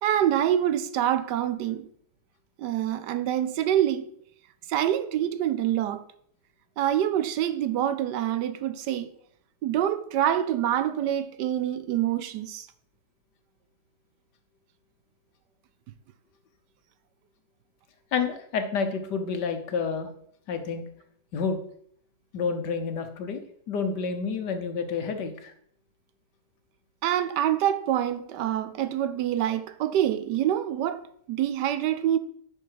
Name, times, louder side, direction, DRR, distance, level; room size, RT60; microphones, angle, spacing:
voice 1, 0.0-1.9 2.6-4.1 4.7-6.1 6.8-9.1 9.6-12.7 27.0-32.2, right 11 dB, 75° right, 1.2 m, -26 dB
voice 2, 18.1-20.1 20.5-20.9 21.3-21.6 22.3-23.4 23.7-25.5, left 5 dB, 70° left, 1.7 m, -29 dB
10.0 x 6.2 x 4.7 m
omnidirectional pair, 1.9 m